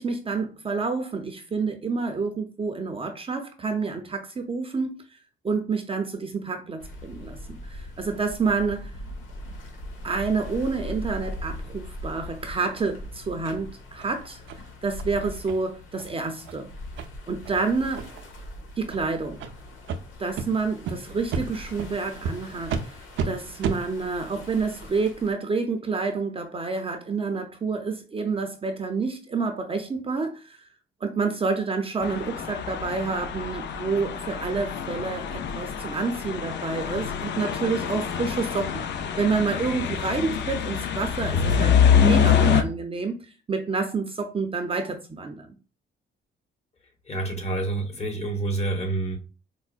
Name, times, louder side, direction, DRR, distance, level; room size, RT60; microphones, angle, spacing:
voice 1, 0.0-4.9 5.4-8.9 10.0-14.4 14.8-16.7 17.3-18.1 18.8-19.4 20.2-23.0 23.2-30.6 31.0-38.8 39.2-43.2 43.5-45.5, right 4 dB, 30° right, 0.6 m, -28 dB
sound 1, 6.8-25.3, left 1 dB, 80° left, 1.1 m, -41 dB
sound 2, 13.4-13.6 14.0-14.1 14.5-14.6 15.0-15.1 15.5-15.6 16.0-16.1 16.4-16.6 17.0-17.1 17.5-17.6 17.9-18.3 18.9-19.0 19.4-19.5 19.9-20.0 20.4-20.5 20.9-21.0 21.3-21.4 21.8-21.9 22.2-22.3 22.7-22.8 23.2-23.3 23.6-23.8, right 5 dB, 75° right, 0.5 m, -30 dB
sound 3, 32.0-42.6, left 8 dB, 65° left, 0.5 m, -25 dB
voice 2, 47.1-49.2, right 2 dB, 35° left, 1.1 m, -28 dB
4.6 x 2.1 x 2.4 m
cardioid pair, 90°, 20 cm